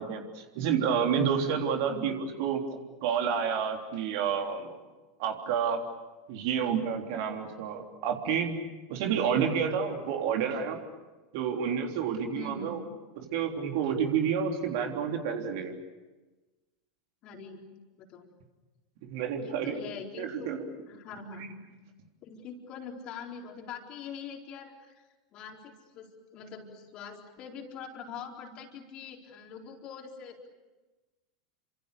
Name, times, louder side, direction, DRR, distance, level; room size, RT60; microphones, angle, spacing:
voice 1, 0.0-2.1 2.4-2.6 3.0-4.7 5.2-5.8 6.3-8.5 8.9-10.8 11.3-12.8 13.3-15.7 19.0-19.8 20.2-20.6, right 7 dB, 55° right, 3 dB, 3.6 m, -29 dB
voice 2, 12.3-12.8 17.2-17.6 18.0-18.3 19.4-20.5 20.9-21.8 22.2-30.5, left 5 dB, 40° left, 2 dB, 4.3 m, -43 dB
29.0 x 26.5 x 6.8 m, 1.2 s
figure-of-eight pair, 85°, 2 cm